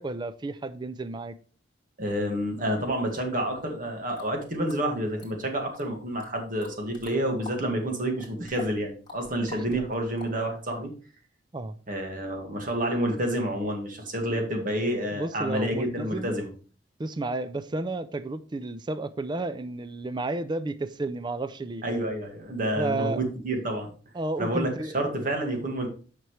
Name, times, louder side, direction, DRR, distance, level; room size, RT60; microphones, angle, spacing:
voice 1, 0.0-1.3 9.5-9.6 11.5-11.8 15.1-16.3 17.0-21.8 22.8-23.2 24.1-25.0, right 2 dB, 25° right, 0.4 m, -32 dB
voice 2, 2.0-10.9 11.9-16.5 21.8-23.9 24.4-25.9, right 1 dB, 50° right, 1.9 m, -29 dB
sound 1, 4.2-4.3 4.7-5.8 6.2-7.6 7.9-10.8, left 3 dB, 25° left, 2.5 m, -45 dB
9.2 x 6.0 x 3.2 m
head